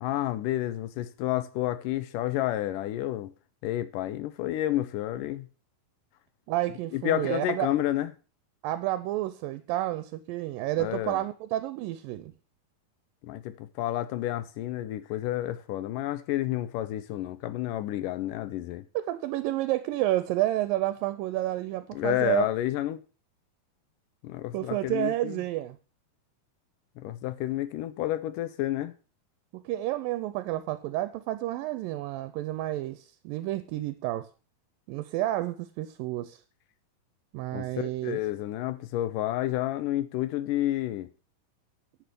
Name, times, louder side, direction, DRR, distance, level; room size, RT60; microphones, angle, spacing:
voice 1, 0.0-3.3 3.6-5.5 6.9-8.1 10.8-11.2 13.2-18.8 21.9-23.0 24.2-25.4 27.0-28.9 37.5-41.1, left 14 dB, 75° left, 2.2 m, -30 dB
voice 2, 6.5-7.7 8.6-12.3 18.9-22.5 24.5-25.8 29.5-34.3 34.9-36.4 37.3-38.2, right 15 dB, 80° right, 2.3 m, -30 dB
10.5 x 6.2 x 6.8 m
omnidirectional pair, 4.1 m